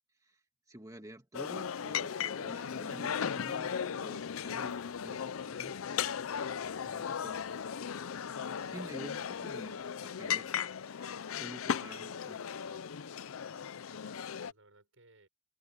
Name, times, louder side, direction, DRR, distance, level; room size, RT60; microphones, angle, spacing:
voice 1, 0.7-5.8 6.8-7.4 8.5-10.6 11.4-12.7, right 1 dB, 15° right, 2.1 m, -49 dB
sound 1, 1.3-14.5, left 7 dB, 80° left, 0.5 m, -37 dB
sound 2, 4.2-10.0, equal, 50° right, 4.6 m, -72 dB
voice 2, 7.0-7.5 13.9-15.3, right 3 dB, 70° right, 6.1 m, -63 dB
open air
head